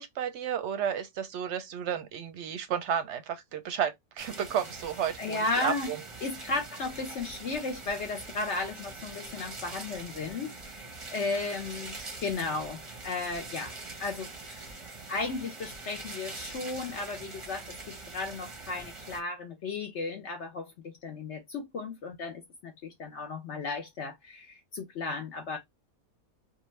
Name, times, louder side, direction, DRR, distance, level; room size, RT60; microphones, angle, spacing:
voice 1, 0.0-6.0, right 8 dB, 60° right, 0.8 m, -32 dB
sound 1, 4.2-19.2, right 3 dB, 30° right, 0.6 m, -43 dB
voice 2, 5.2-6.0 6.2-11.9 12.2-13.7 14.0-14.7 15.1-25.6, left 3 dB, 60° left, 0.8 m, -35 dB
2.5 x 2.4 x 3.1 m
omnidirectional pair, 1.5 m